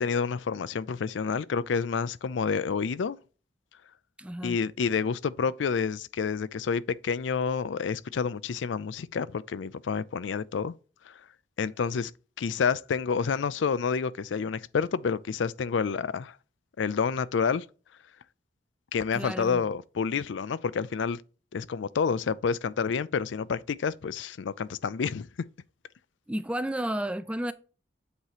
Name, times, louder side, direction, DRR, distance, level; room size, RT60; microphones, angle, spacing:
voice 1, 0.0-3.2 4.4-10.7 11.1-11.2 11.6-12.1 12.4-16.4 16.8-17.7 18.9-21.2 21.5-25.3, left 6 dB, 85° left, 0.4 m, -29 dB
voice 2, 4.2-4.6 19.1-19.7 26.3-27.5, right 1 dB, 5° right, 0.4 m, -32 dB
8.2 x 3.0 x 4.8 m
head